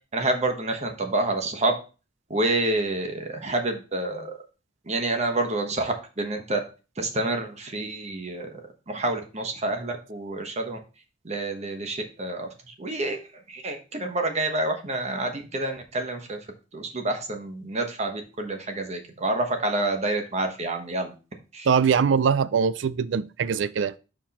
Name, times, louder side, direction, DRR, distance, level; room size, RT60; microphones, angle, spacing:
voice 1, 0.1-1.7 2.3-4.4 4.9-6.6 7.0-8.5 8.9-10.8 11.2-13.2 13.5-16.4 16.7-21.1 21.5-21.7, right 2 dB, 35° right, 1.1 m, -28 dB
voice 2, 21.7-24.0, right 6 dB, 70° right, 0.4 m, -22 dB
5.9 x 4.6 x 4.1 m
head